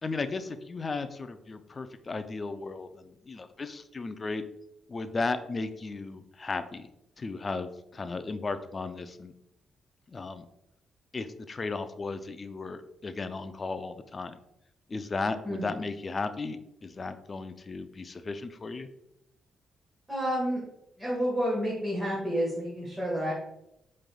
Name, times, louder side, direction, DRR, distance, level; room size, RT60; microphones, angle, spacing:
voice 1, 0.0-4.4 4.9-6.9 7.2-9.3 10.1-10.4 11.1-14.4 14.9-18.9, left 3 dB, 35° left, 10 dB, 0.3 m, -35 dB
voice 2, 20.1-20.6 21.0-23.3, equal, 10° right, -7 dB, 1.5 m, -29 dB
5.0 x 3.2 x 2.3 m, 0.84 s
cardioid pair, 80°, 0 cm